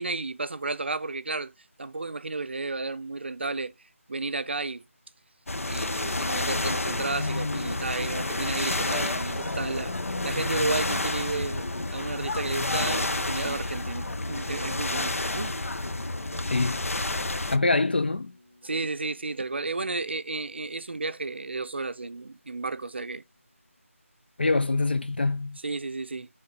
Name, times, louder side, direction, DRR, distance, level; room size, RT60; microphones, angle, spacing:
voice 1, 0.0-1.5 1.8-3.7 4.1-4.8 5.7-9.9 10.2-11.7 11.9-15.9 16.1-16.4 18.6-23.2 25.6-26.3, right 3 dB, 50° right, 0.5 m, -32 dB
sound 1, 5.5-17.6, left 2 dB, 75° left, 0.9 m, -30 dB
Bass guitar, 14.3-22.3, left 2 dB, 10° left, 1.8 m, -53 dB
voice 2, 17.5-18.3 24.4-25.6, left 3 dB, 45° left, 0.3 m, -24 dB
10.5 x 3.8 x 2.7 m
figure-of-eight pair, 175°, 8 cm